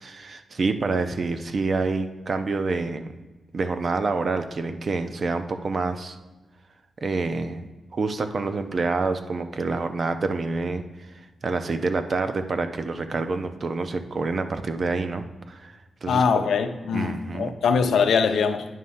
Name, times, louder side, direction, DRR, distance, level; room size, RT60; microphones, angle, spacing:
voice 1, 0.0-3.1 3.5-6.2 7.0-7.6 7.9-10.8 11.4-15.7 16.0-16.4 16.9-17.5, right 3 dB, 45° right, 8 dB, 0.6 m, -27 dB
voice 2, 16.1-18.7, left 6 dB, 85° left, 7 dB, 0.6 m, -22 dB
9.2 x 3.2 x 5.5 m, 1.2 s
wide cardioid pair, 120°, 0 cm